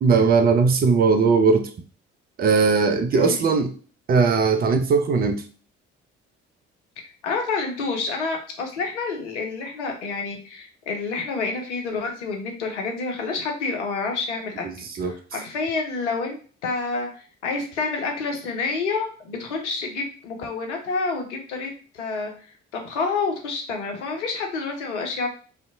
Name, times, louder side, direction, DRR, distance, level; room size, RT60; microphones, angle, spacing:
voice 1, 0.0-1.7 2.4-3.7 4.1-5.4 14.6-15.2, right 4 dB, 25° right, 8 dB, 0.4 m, -19 dB
voice 2, 3.1-3.5 7.2-17.1 17.4-25.3, left 4 dB, 80° left, 3 dB, 0.6 m, -28 dB
2.6 x 2.1 x 2.6 m, 0.41 s
figure-of-eight pair, 45°, 35 cm